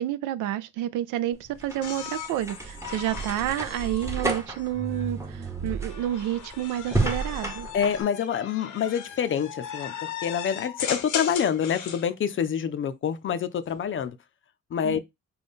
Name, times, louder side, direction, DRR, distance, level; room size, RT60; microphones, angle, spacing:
voice 1, 0.0-7.7 14.8-15.0, right 12 dB, 90° right, 0.5 m, -30 dB
sound 1, 1.3-8.0, right 2 dB, 10° right, 0.8 m, -32 dB
sound 2, 1.8-5.1 5.9-12.1 13.6-14.1, left 9 dB, 80° left, 0.7 m, -38 dB
voice 2, 7.7-14.2 14.7-15.0, left 8 dB, 40° left, 0.5 m, -27 dB
3.9 x 2.3 x 3.5 m
cardioid pair, 90°, 30 cm